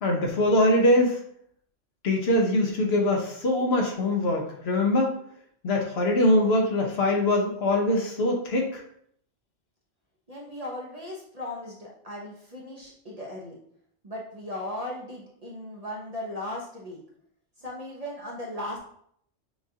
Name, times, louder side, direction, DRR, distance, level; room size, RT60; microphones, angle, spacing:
voice 1, 0.0-1.2 2.0-5.2 5.6-8.8, left 1 dB, 60° left, 1 dB, 0.9 m, -23 dB
voice 2, 10.3-13.6 14.0-17.0 17.6-18.8, left 1 dB, 35° right, -3 dB, 0.7 m, -37 dB
6.0 x 2.4 x 2.7 m, 0.66 s
omnidirectional pair, 1.3 m